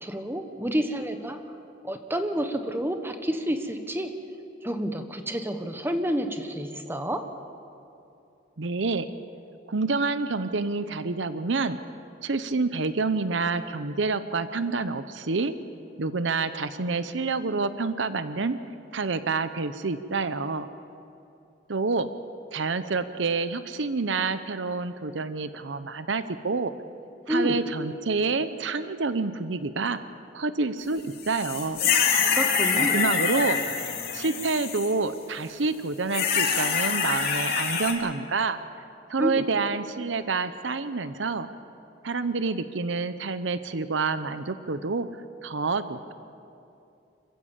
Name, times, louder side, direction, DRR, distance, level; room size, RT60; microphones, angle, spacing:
voice 1, 0.0-1.4 1.8-4.1 4.6-7.2 27.3-27.6 32.3-33.0 39.2-39.5, equal, 10° right, 6 dB, 1.2 m, -29 dB
voice 2, 8.6-9.1 9.7-11.8 12.2-15.5 16.0-18.6 18.9-20.7 21.7-22.1 22.5-26.7 27.3-30.0 30.3-31.8 32.7-33.6 34.1-38.6 39.1-41.5 42.0-45.1 45.4-46.1, right 4 dB, 75° right, 12 dB, 0.8 m, -28 dB
sound 1, 31.2-34.9 36.1-37.9, left 6 dB, 55° left, 2.4 m, -25 dB
26.0 x 15.0 x 7.4 m, 2.6 s
head